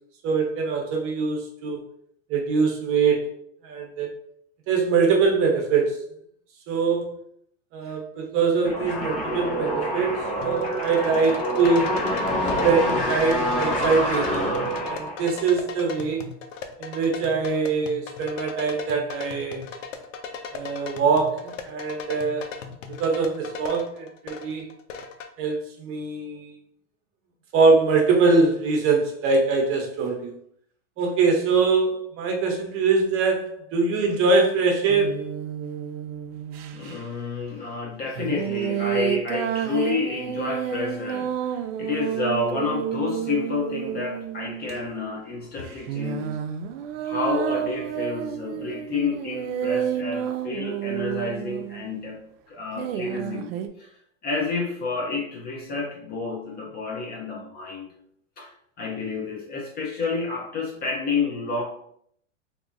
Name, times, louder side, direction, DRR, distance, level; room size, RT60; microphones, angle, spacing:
voice 1, 0.2-1.8 2.3-3.3 3.6-4.1 4.7-6.0 6.7-7.1 7.7-12.0 12.6-14.5 14.8-16.3 16.8-19.6 20.5-22.5 23.0-24.7 25.4-26.5 27.5-30.3 31.0-35.2, right 4 dB, 35° right, 2 dB, 0.8 m, -23 dB
sound 1, 8.6-15.4, equal, 45° left, 1.1 m, -26 dB
sound 2, 10.4-25.3, left 5 dB, 80° left, 0.6 m, -38 dB
sound 3, 34.9-37.0 38.2-44.9 45.6-52.0 52.8-53.7, right 9 dB, 55° right, 0.4 m, -30 dB
voice 2, 36.7-46.4 47.0-52.2 52.5-53.5 53.8-53.9 54.2-57.9 58.4-61.6, left 4 dB, 25° left, 0 dB, 0.5 m, -29 dB
3.5 x 2.7 x 2.5 m, 0.67 s
hypercardioid pair, 115°, 37 cm